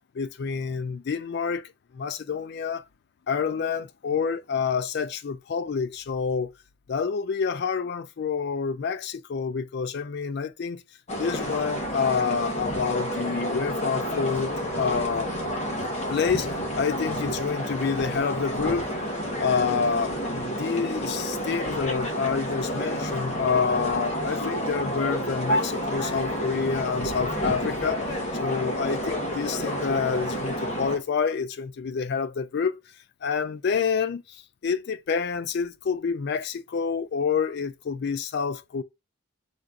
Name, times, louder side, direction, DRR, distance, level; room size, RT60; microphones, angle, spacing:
voice 1, 0.1-2.8 3.3-6.5 6.9-10.8 11.2-14.5 14.8-15.3 16.1-18.9 19.4-28.0 28.3-32.8 33.2-38.8, left 6 dB, 50° left, 0.3 m, -28 dB
sound 1, 11.1-31.0, equal, 30° left, 0.9 m, -30 dB
3.8 x 2.4 x 4.5 m
head